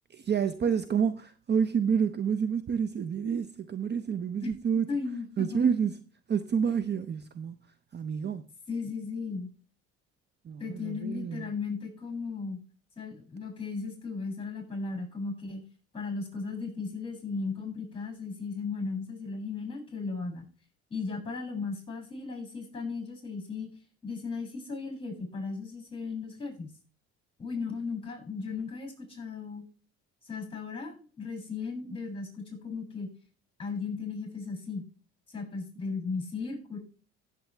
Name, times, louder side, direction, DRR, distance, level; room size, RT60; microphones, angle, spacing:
voice 1, 0.1-4.9 5.4-5.9 6.3-7.5 7.9-8.4 10.4-11.5, right 7 dB, 35° right, 0.7 m, -28 dB
voice 2, 4.9-5.6 8.7-9.5 10.6-12.6 13.0-15.6 15.9-20.4 20.9-23.7 24.0-26.7 27.4-29.6 30.2-33.1 33.6-34.8 35.3-36.8, left 4 dB, 15° left, 7.2 m, -36 dB
16.0 x 7.6 x 3.4 m
supercardioid pair, 90°, 30 cm